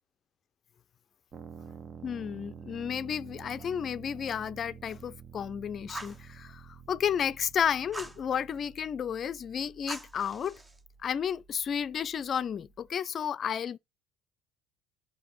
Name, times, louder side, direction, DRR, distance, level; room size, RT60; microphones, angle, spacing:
sound 1, 1.3-12.9, right 6 dB, 45° right, 0.9 m, -50 dB
voice 1, 2.0-10.6 11.0-13.8, left 8 dB, 45° left, 0.4 m, -32 dB
Fire, 5.9-6.2 7.9-8.2 9.9-10.8, right 2 dB, 15° right, 0.7 m, -42 dB
5.0 x 4.7 x 5.9 m
hypercardioid pair, 65°, 0 cm